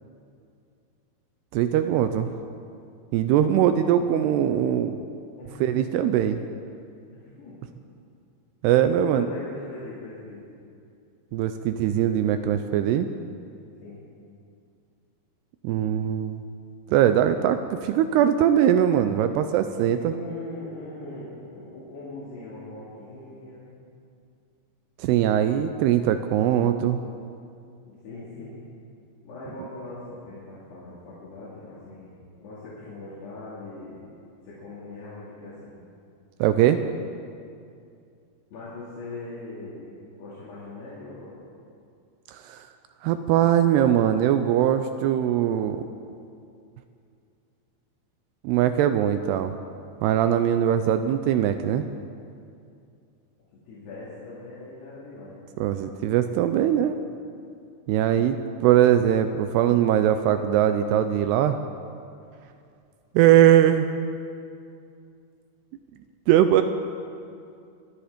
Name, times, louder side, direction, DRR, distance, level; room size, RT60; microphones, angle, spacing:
voice 1, 1.5-2.3 3.1-5.0 5.6-6.4 8.6-9.3 11.3-13.1 15.6-16.4 16.9-20.1 25.0-27.0 36.4-36.8 42.3-42.6 43.0-45.8 48.4-49.5 50.0-51.9 55.6-57.0 57.9-61.6 63.2-63.9 66.3-66.6, right 10 dB, 80° right, 9 dB, 2.5 m, -21 dB
voice 2, 7.1-7.6 8.8-10.6 13.8-14.0 19.9-23.7 27.9-28.5 29.2-34.1 34.4-35.7 38.5-39.9 40.2-41.4 53.7-55.4, left 2 dB, 70° left, -9 dB, 4.7 m, -40 dB
24.0 x 10.5 x 5.1 m, 2.4 s
omnidirectional pair, 4.9 m